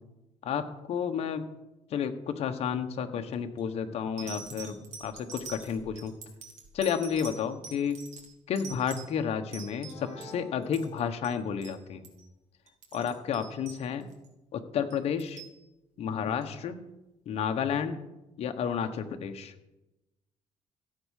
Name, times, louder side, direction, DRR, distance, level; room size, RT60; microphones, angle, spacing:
voice 1, 0.4-1.5 1.9-6.1 6.7-8.0 8.5-12.1 12.9-14.1 14.5-15.4 16.0-16.8 17.2-18.0 18.4-19.5, left 7 dB, 60° left, 6 dB, 1.3 m, -31 dB
sound 1, 3.3-3.6 4.2-10.3 10.6-11.0 11.2-11.4 11.6-11.8 12.0-12.3 12.7-14.3 14.9-15.6 16.4-16.5, right 5 dB, 65° right, 3.4 m, -45 dB
sound 2, 9.8-11.7, left 1 dB, 25° right, 5.8 m, -48 dB
14.5 x 8.6 x 6.6 m, 0.97 s
cardioid pair, 130°, 12 cm